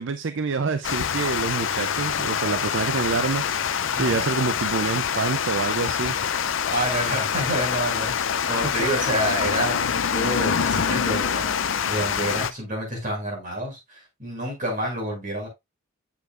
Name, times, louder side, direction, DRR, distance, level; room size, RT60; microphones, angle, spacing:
voice 1, 0.0-3.4 4.0-6.4, right 4 dB, 65° right, 0.5 m, -27 dB
Water, 0.8-12.5, left 7 dB, 70° left, 0.6 m, -25 dB
voice 2, 6.7-15.5, equal, 40° right, 6.0 m, -28 dB
8.3 x 7.0 x 2.4 m
head